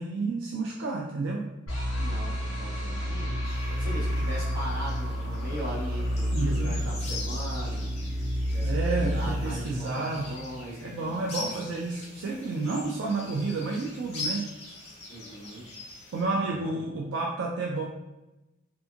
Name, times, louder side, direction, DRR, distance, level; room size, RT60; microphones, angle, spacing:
voice 1, 0.0-1.5 6.3-6.8 8.6-10.3 10.8-14.4 16.1-17.8, right 3 dB, 65° right, -3 dB, 0.3 m, -30 dB
sound 1, 1.7-10.8, equal, 85° left, 1.2 m, -30 dB
voice 2, 2.0-7.9 8.5-8.7 9.0-11.6 13.0-13.3 15.1-15.6 16.2-16.8, equal, 45° right, -8 dB, 1.2 m, -40 dB
sound 2, 3.4-16.2, left 2 dB, 30° left, 0.6 m, -42 dB
2.7 x 2.5 x 2.4 m, 0.99 s
head